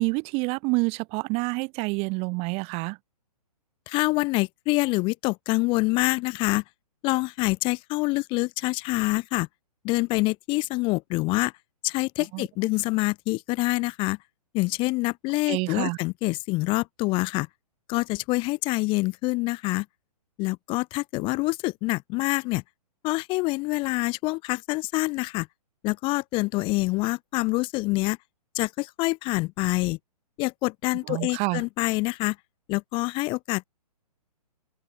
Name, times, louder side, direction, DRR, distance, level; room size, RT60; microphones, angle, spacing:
voice 1, 0.0-3.0 12.3-12.5 15.5-16.0 31.1-31.6, right 29 dB, 30° right, 2.8 m, -27 dB
voice 2, 3.9-6.6 7.0-9.5 9.8-11.5 11.8-14.2 14.5-17.5 17.9-19.9 20.4-22.6 23.0-25.5 25.8-28.2 28.5-30.0 30.4-32.4 32.7-33.7, left 23 dB, 25° left, 1.0 m, -26 dB
open air
hypercardioid pair, 145°, 20 cm